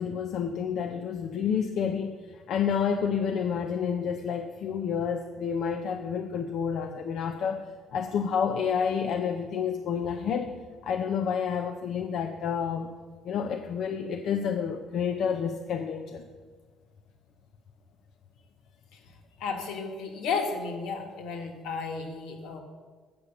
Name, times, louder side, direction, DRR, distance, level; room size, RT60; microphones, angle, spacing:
voice 1, 0.0-10.5 10.8-12.9 13.2-16.2, left 7 dB, 55° left, 5 dB, 0.6 m, -29 dB
voice 2, 19.4-22.6, left 5 dB, 75° left, 3 dB, 1.6 m, -33 dB
8.6 x 6.6 x 6.9 m, 1.5 s
cardioid pair, 155°, 0 cm